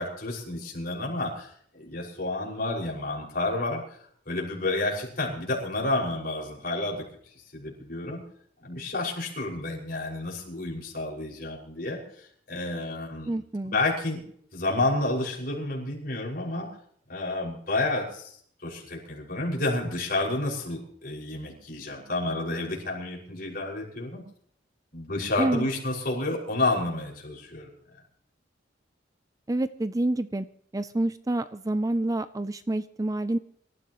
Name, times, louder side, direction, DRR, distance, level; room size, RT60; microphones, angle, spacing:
voice 1, 0.0-4.0 4.3-7.0 7.5-8.2 8.6-13.4 13.6-14.2 14.5-16.7 17.1-24.2 24.9-27.7, left 2 dB, 50° left, -2 dB, 5.9 m, -30 dB
voice 2, 13.3-13.8 25.4-25.7 29.5-30.5 30.7-33.4, right 1 dB, 20° right, 12 dB, 0.5 m, -28 dB
25.0 x 14.5 x 3.1 m, 0.63 s
head